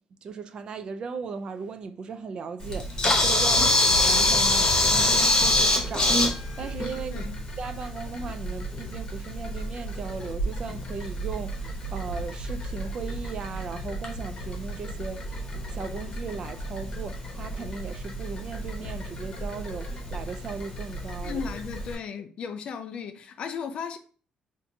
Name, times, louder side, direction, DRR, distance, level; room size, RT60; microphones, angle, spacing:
voice 1, 0.2-7.3 7.6-21.4, right 5 dB, 40° right, 0.3 m, -37 dB
Camera, 2.6-21.9, left 1 dB, 30° left, 0.8 m, -27 dB
voice 2, 7.1-7.4 21.2-24.0, left 6 dB, 50° left, 0.4 m, -35 dB
4.4 x 2.5 x 2.6 m
cardioid pair, 155°, 2 cm